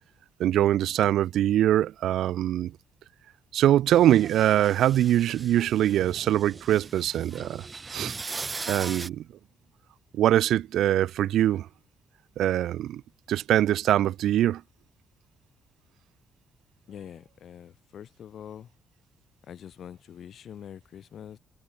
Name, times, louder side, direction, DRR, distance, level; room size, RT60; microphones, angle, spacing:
voice 1, 0.4-2.7 3.5-7.6 7.9-8.1 8.7-9.2 10.2-11.7 12.4-13.0 13.3-14.6, right 12 dB, 75° right, 0.3 m, -23 dB
sound 1, 3.9-9.1, right 4 dB, 30° right, 2.1 m, -39 dB
voice 2, 16.9-18.7 19.5-21.4, left 9 dB, 65° left, 2.6 m, -44 dB
cardioid pair, 90°, 0 cm